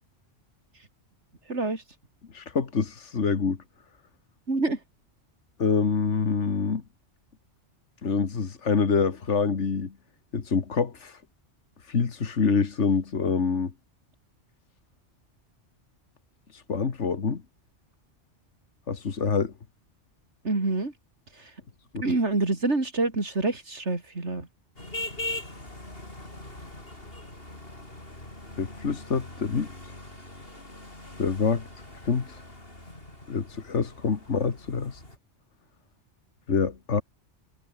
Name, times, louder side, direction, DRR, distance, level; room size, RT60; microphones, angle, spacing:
voice 1, 1.5-1.8 4.5-4.8 20.4-20.9 21.3-21.5 22.0-24.5, right 3 dB, 75° right, 4.0 m, -27 dB
voice 2, 2.3-3.6 5.6-6.8 8.0-9.9 10.3-11.2 11.9-13.7 16.5-17.4 18.9-19.5 21.9-22.0 28.6-29.7 31.2-31.6 32.1-32.4 33.3-35.0 36.5-37.0, left 5 dB, 85° left, 2.1 m, -26 dB
sound 1, 24.8-35.2, left 1 dB, 55° left, 6.3 m, -41 dB
omnidirectional pair, 1.2 m